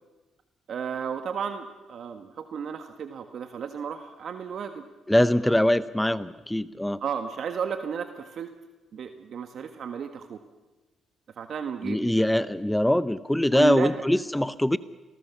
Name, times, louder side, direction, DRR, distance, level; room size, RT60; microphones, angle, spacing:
voice 1, 0.7-4.8 7.0-8.5 8.9-10.4 11.4-12.1 13.5-14.0, right 7 dB, 60° right, 7 dB, 1.6 m, -33 dB
voice 2, 5.1-7.0 11.8-14.8, left 1 dB, 5° left, 15 dB, 0.7 m, -23 dB
28.0 x 19.5 x 7.1 m, 1.2 s
cardioid pair, 90°, 0 cm